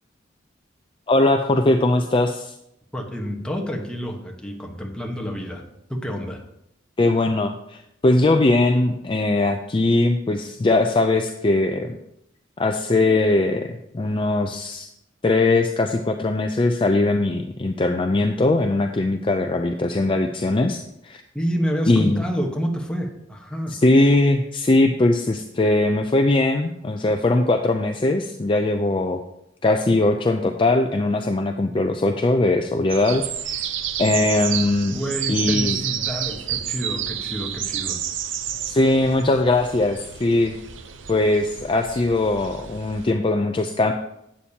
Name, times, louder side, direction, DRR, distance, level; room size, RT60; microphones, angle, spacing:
voice 1, 1.1-2.5 7.0-12.0 12.6-14.9 15.2-21.2 21.9-22.2 23.7-29.2 29.6-33.7 34.0-35.0 35.3-35.8 38.7-40.5 41.1-43.9, left 2 dB, 25° left, 5 dB, 0.4 m, -20 dB
voice 2, 2.9-5.6 5.9-6.4 21.3-23.8 34.9-38.0, equal, 5° left, 1 dB, 1.2 m, -28 dB
sound 1, 32.9-43.1, right 9 dB, 75° right, 0.7 m, -30 dB
11.5 x 8.6 x 2.8 m, 0.81 s
head